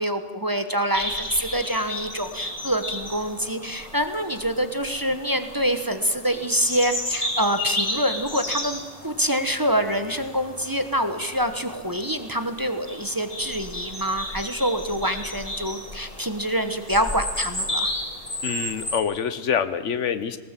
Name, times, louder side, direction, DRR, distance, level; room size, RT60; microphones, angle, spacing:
voice 1, 0.0-17.9, equal, 20° right, 8 dB, 1.0 m, -26 dB
sound 1, 0.9-19.0, left 1 dB, 30° left, 2.7 m, -33 dB
voice 2, 18.4-20.4, left 7 dB, 80° left, 13 dB, 1.3 m, -26 dB
19.5 x 19.0 x 7.4 m, 1.4 s
omnidirectional pair, 1.2 m